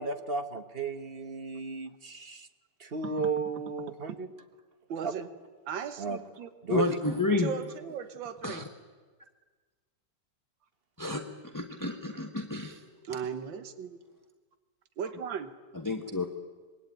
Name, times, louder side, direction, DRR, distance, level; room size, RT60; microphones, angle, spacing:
voice 1, 0.0-2.5 2.8-4.3 5.0-5.3 6.0-6.2 6.6-6.8, right 4 dB, 35° right, 9 dB, 1.3 m, -34 dB
voice 2, 4.9-5.3 5.7-6.5 7.4-8.6 13.0-14.0 15.0-15.5, right 7 dB, 85° right, 10 dB, 1.9 m, -37 dB
voice 3, 6.7-7.5 8.4-8.6 11.0-12.9 15.7-16.3, left 2 dB, 10° left, 4 dB, 1.0 m, -30 dB
26.0 x 21.5 x 9.2 m, 1.4 s
omnidirectional pair, 2.0 m